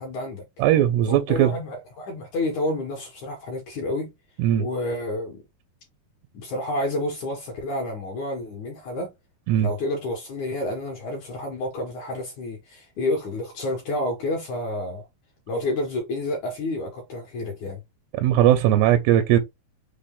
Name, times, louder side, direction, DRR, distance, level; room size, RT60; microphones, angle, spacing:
voice 1, 0.0-0.4 1.1-4.1 4.6-5.4 6.3-9.1 9.6-15.1 15.5-17.8, left 1 dB, 70° left, 1.8 m, -29 dB
voice 2, 0.6-1.5 4.4-4.7 9.5-9.7 18.2-19.4, right 12 dB, 90° right, 2.7 m, -19 dB
6.1 x 2.2 x 3.6 m
omnidirectional pair, 4.7 m